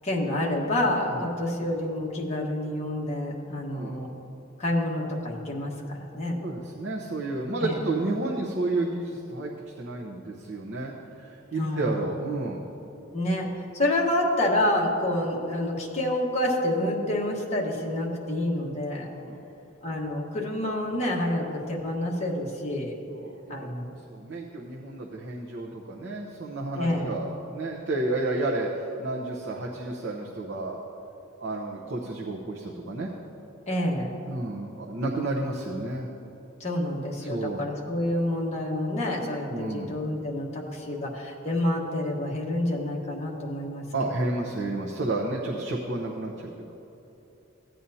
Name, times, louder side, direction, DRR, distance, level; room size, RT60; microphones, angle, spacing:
voice 1, 0.0-4.1 4.6-6.4 7.6-7.7 11.6-12.1 13.1-13.5 13.7-19.1 19.8-23.0 23.5-23.9 26.8-27.1 33.7-34.1 36.6-43.8, left 1 dB, 35° left, -2 dB, 1.3 m, -28 dB
voice 2, 6.4-12.6 19.1-19.4 23.1-23.7 24.1-30.8 31.4-33.1 34.3-36.1 37.2-37.7 39.5-39.9 43.9-46.5, right 2 dB, 60° right, -2 dB, 0.8 m, -31 dB
15.5 x 9.0 x 2.8 m, 2.9 s
head